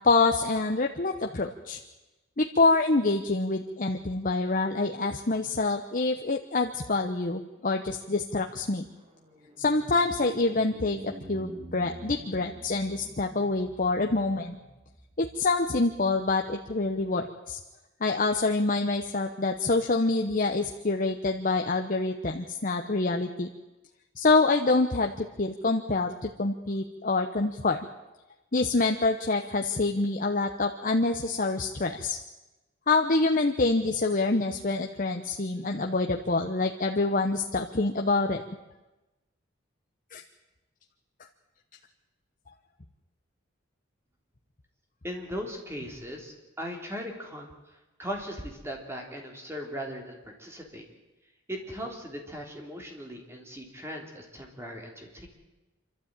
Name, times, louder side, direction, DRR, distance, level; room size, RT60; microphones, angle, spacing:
voice 1, 0.0-1.8 2.4-8.9 9.6-14.6 15.2-17.6 18.0-23.5 24.2-27.9 28.5-32.2 32.9-38.4 40.1-40.2, left 3 dB, 45° left, 4 dB, 1.0 m, -26 dB
sound 1, 7.6-17.1, equal, 30° right, 2.2 m, -49 dB
voice 2, 45.0-50.9 51.5-55.3, equal, 15° right, 1 dB, 3.4 m, -38 dB
27.0 x 13.0 x 9.0 m, 1.1 s
head